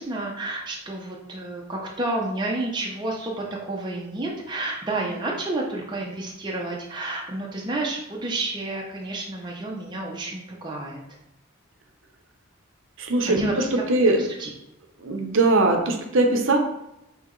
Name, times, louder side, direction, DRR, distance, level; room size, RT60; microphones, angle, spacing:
voice 1, 0.0-11.0 13.2-14.5, right 2 dB, 20° right, -2 dB, 0.6 m, -30 dB
voice 2, 13.0-14.2 15.0-16.6, right 2 dB, 70° right, 3 dB, 0.7 m, -21 dB
5.9 x 2.9 x 3.1 m, 0.86 s
head